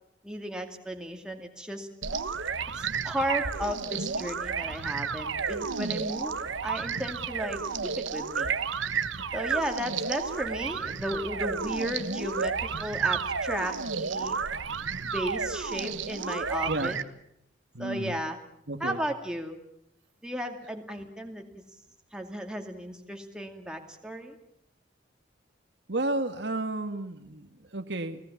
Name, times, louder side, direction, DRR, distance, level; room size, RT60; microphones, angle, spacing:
voice 1, 0.2-1.9 2.8-7.6 8.0-8.5 9.3-14.4 15.1-17.0 17.8-18.4 18.8-19.6 20.2-21.6 22.1-24.4, equal, 5° right, 3 dB, 2.4 m, -34 dB
sound 1, 2.0-17.0, right 5 dB, 85° right, 1.3 m, -31 dB
voice 2, 14.2-14.9 16.7-16.9 17.7-18.2 18.7-19.0 25.9-28.2, right 2 dB, 65° right, 7 dB, 1.8 m, -33 dB
29.5 x 18.5 x 7.2 m, 0.75 s
head